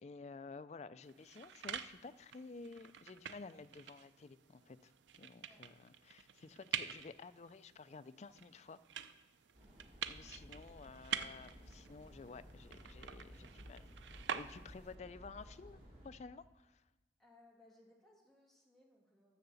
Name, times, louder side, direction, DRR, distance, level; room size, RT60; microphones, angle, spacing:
voice 1, 0.0-4.9 5.2-8.8 10.1-13.8 14.3-16.8, left 4 dB, 40° left, 14 dB, 0.3 m, -52 dB
sound 1, 1.0-15.0, right 8 dB, 85° right, 0.5 m, -47 dB
sound 2, 9.5-16.1, equal, 50° right, 4.0 m, -56 dB
voice 2, 14.4-15.0 17.2-19.4, left 2 dB, ahead, -3 dB, 2.1 m, -66 dB
10.5 x 6.5 x 7.0 m, 1.1 s
head